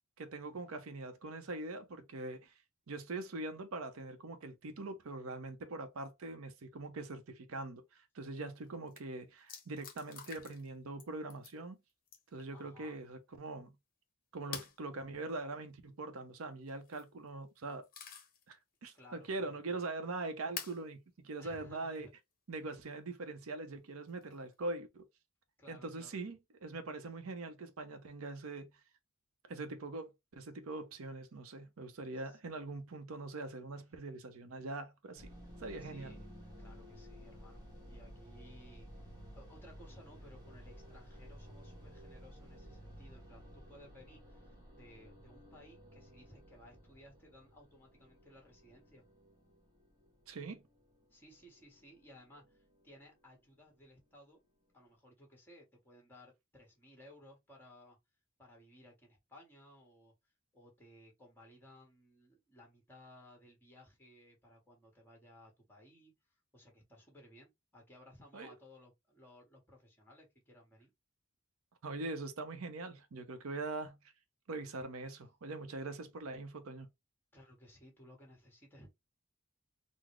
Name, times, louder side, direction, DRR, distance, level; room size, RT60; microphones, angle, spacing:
voice 1, 0.2-2.5 2.9-11.8 12.3-13.7 14.3-17.9 18.5-18.6 18.8-22.1 22.5-25.0 25.7-28.7 29.5-35.3 35.6-36.1 50.3-50.6 68.3-68.6 71.8-74.0 74.5-76.9, right 2 dB, 85° right, 0.6 m, -42 dB
sound 1, 8.6-8.7 8.9-9.0 9.5-10.7 11.0-11.6 12.1-12.4 14.5-14.8 16.7-17.1 17.6-18.4 18.9-19.0 20.6-20.8 22.0-22.1 24.1-24.5, left 7 dB, 45° left, 0.8 m, -47 dB
voice 2, 12.5-12.9 18.9-19.8 21.4-22.1 25.6-26.2 32.1-32.4 35.8-36.3 36.6-39.1 39.3-49.0 51.1-54.4 54.7-58.0 58.4-60.1 60.5-66.1 66.5-70.9 77.3-78.9, left 1 dB, 10° left, 1.3 m, -59 dB
sound 2, 35.2-53.5, equal, 20° right, 1.2 m, -55 dB
3.9 x 2.0 x 3.0 m
head